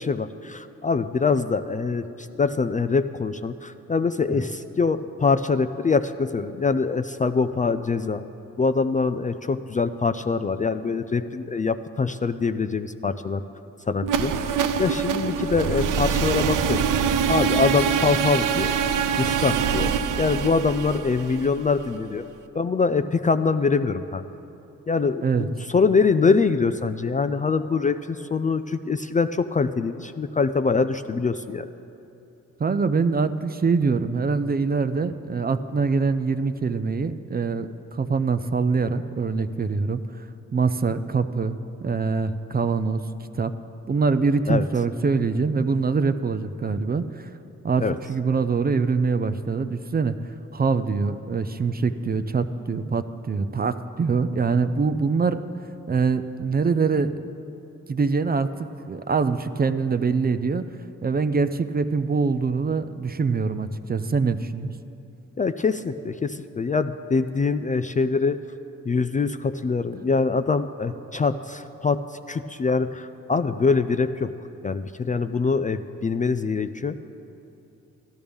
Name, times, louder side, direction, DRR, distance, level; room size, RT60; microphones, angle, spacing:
voice 1, 0.0-8.2 8.6-13.4 13.9-16.8 17.3-18.7 19.2-19.9 20.2-22.2 22.5-24.2 24.9-31.7 44.5-44.6 47.8-48.0 65.4-68.4 68.9-74.3 74.6-77.0, left 4 dB, 25° left, 10 dB, 0.4 m, -24 dB
sound 1, 14.0-22.0, right 7 dB, 75° right, 0.6 m, -24 dB
voice 2, 32.6-43.0 43.3-43.5 43.9-47.3 47.6-50.2 50.5-55.4 55.9-57.1 57.9-64.8, right 4 dB, 30° right, 11 dB, 0.5 m, -24 dB
12.5 x 12.5 x 3.5 m, 2.8 s
supercardioid pair, 55°, 32 cm